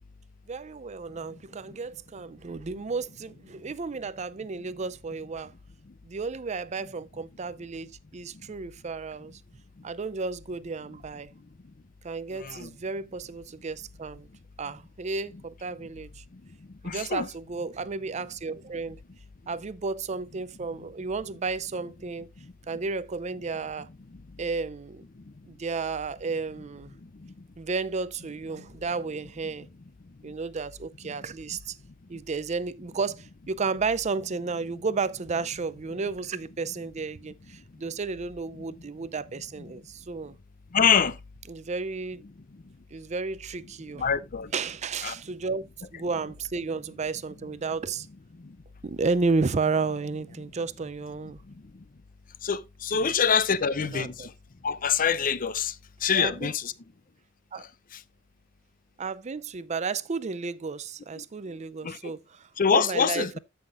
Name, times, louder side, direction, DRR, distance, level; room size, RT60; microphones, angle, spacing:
voice 1, 0.5-5.5 6.0-9.3 9.8-11.3 12.0-14.3 14.6-16.2 16.8-19.0 19.5-22.3 22.7-23.9 24.4-25.0 25.5-26.9 27.6-29.7 30.2-31.7 32.1-40.3 41.5-42.2 42.9-44.1 44.5-48.1 48.8-51.4 52.9-53.1 53.8-54.3 56.1-56.5 57.5-57.6 59.0-63.4, right 4 dB, 35° right, 0.5 m, -32 dB
voice 2, 12.4-12.7 16.8-17.3 27.2-27.3 40.7-41.2 43.9-44.5 45.0-45.1 48.4-48.5 52.4-54.3 54.6-55.7 56.0-56.7 61.8-62.1 62.6-63.4, left 6 dB, 45° left, 0.6 m, -25 dB
14.0 x 5.8 x 2.5 m
head